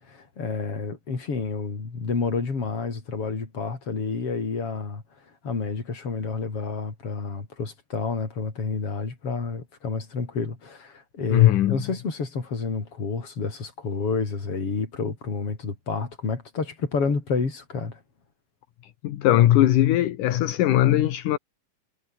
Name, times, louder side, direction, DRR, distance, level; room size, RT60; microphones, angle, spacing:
voice 1, 0.1-5.0 5.4-18.0, left 4 dB, 40° left, 5.2 m, -29 dB
voice 2, 11.3-11.8 19.0-21.4, left 13 dB, 65° left, 2.6 m, -19 dB
omnidirectional pair, 4.2 m